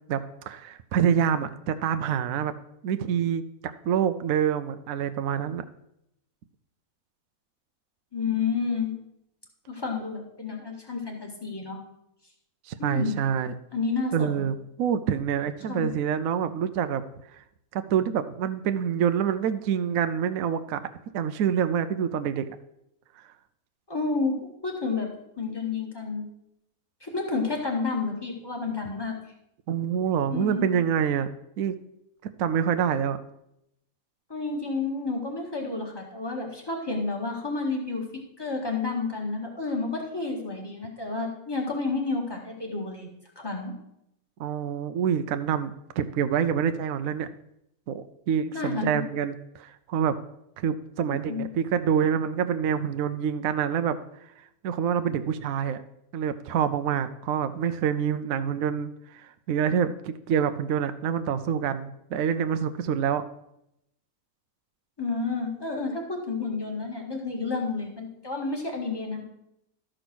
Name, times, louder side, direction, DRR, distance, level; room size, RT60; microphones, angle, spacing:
voice 1, 0.1-2.5 2.8-5.6 12.7-13.5 14.1-17.0 17.7-20.9 21.1-22.5 29.7-31.3 31.6-31.7 32.4-33.2 44.4-47.3 47.9-50.2 50.6-54.0 54.6-55.8 56.1-63.2, right 8 dB, 70° right, 10 dB, 1.0 m, -26 dB
voice 2, 8.1-8.9 9.7-11.8 12.8-13.2 13.7-14.4 15.7-15.9 23.9-24.4 24.6-25.1 25.4-26.3 27.0-29.1 30.3-30.7 34.3-38.1 38.4-43.1 43.4-43.7 48.5-49.0 51.0-51.5 65.0-69.2, left 4 dB, 15° left, 1 dB, 1.9 m, -30 dB
13.0 x 5.0 x 6.1 m, 0.81 s
omnidirectional pair, 1.5 m